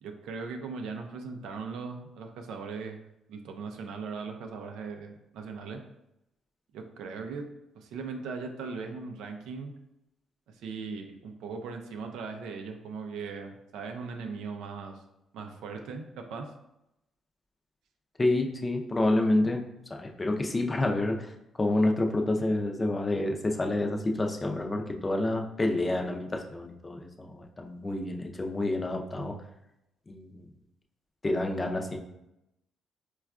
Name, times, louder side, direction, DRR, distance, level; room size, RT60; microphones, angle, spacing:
voice 1, 0.0-3.0 3.3-5.8 6.7-7.5 7.7-9.7 10.6-15.0 15.3-16.5, right 4 dB, 85° right, 4 dB, 0.4 m, -39 dB
voice 2, 18.2-19.6 19.9-21.3 21.6-29.3 30.1-30.4 31.2-32.0, left 2 dB, 25° left, 3 dB, 0.4 m, -28 dB
4.4 x 2.3 x 2.4 m, 0.86 s
cardioid pair, 90°, 0 cm